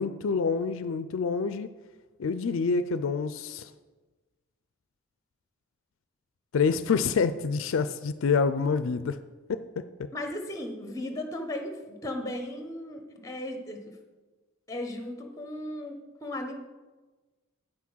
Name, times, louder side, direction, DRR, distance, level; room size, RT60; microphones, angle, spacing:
voice 1, 0.0-1.7 2.2-3.7 6.5-9.2 9.5-10.1, left 5 dB, 70° left, 12 dB, 0.4 m, -27 dB
voice 2, 10.1-13.8 14.7-16.5, left 1 dB, 15° left, 5 dB, 1.0 m, -36 dB
8.7 x 6.0 x 6.1 m, 1.3 s
head